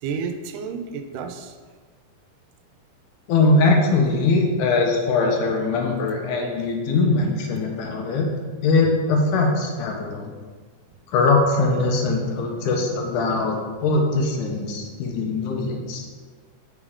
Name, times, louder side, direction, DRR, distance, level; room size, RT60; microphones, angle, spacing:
voice 1, 0.0-1.6 12.2-13.0 13.3-13.5, right 5 dB, 85° right, 7 dB, 2.1 m, -33 dB
voice 2, 3.3-8.3 8.6-10.3 11.1-13.6 13.8-16.1, left 3 dB, 80° left, 1 dB, 2.1 m, -21 dB
5.4 x 4.9 x 3.6 m, 1.5 s
omnidirectional pair, 3.6 m